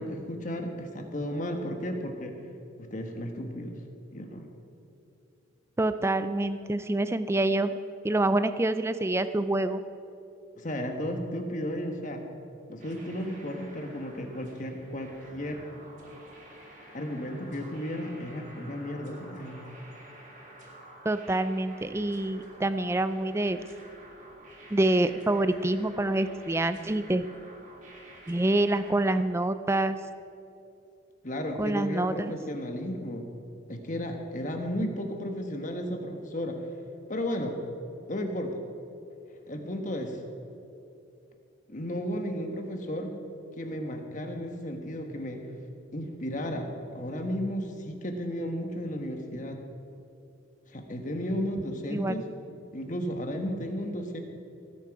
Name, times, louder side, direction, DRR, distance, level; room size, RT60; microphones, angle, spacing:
voice 1, 0.0-2.3 2.8-3.8 4.1-4.5 10.6-12.2 12.7-15.6 16.9-19.7 31.2-33.2 33.7-36.6 37.1-37.6 38.1-38.5 39.5-40.2 41.7-43.1 43.6-45.4 45.9-49.6 50.7-52.3 52.7-54.2, equal, 40° left, 4 dB, 1.3 m, -34 dB
voice 2, 5.8-7.7 8.0-9.8 21.0-23.6 24.7-27.3 28.3-30.0 31.6-32.3 51.9-52.1, right 2 dB, 15° right, 12 dB, 0.4 m, -26 dB
sound 1, 12.8-29.2, right 1 dB, 40° right, 3.5 m, -50 dB
18.5 x 9.8 x 4.8 m, 2.7 s
head